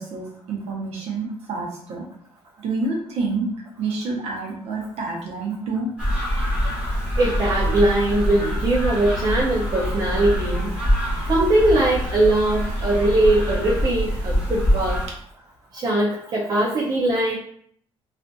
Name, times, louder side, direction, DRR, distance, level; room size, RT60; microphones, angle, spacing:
voice 1, 0.0-2.0 2.6-3.5 3.8-5.9 6.6-6.8 10.1-10.2 11.0-11.1, right 3 dB, 70° right, -1 dB, 0.8 m, -28 dB
sound 1, 6.0-15.1, equal, 10° right, 0.9 m, -24 dB
voice 2, 7.2-10.7 11.3-15.0 15.7-17.4, right 2 dB, 35° right, -2 dB, 0.4 m, -21 dB
2.6 x 2.4 x 2.2 m, 0.65 s
cardioid pair, 155°, 11 cm